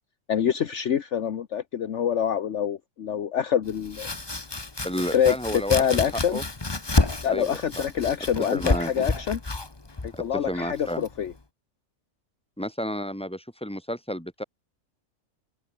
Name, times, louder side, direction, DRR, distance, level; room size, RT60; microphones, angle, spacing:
voice 1, 0.3-4.1 5.1-5.3 5.7-6.4 7.2-9.4 10.0-11.3, left 8 dB, 60° left, 1.3 m, -26 dB
Domestic sounds home sounds, 3.7-11.4, left 2 dB, 20° left, 1.3 m, -30 dB
voice 2, 4.8-5.8 6.3-6.4 7.3-7.8 8.5-8.9 10.1-11.1 12.6-14.4, equal, 5° left, 6.7 m, -31 dB
open air
omnidirectional pair, 1.4 m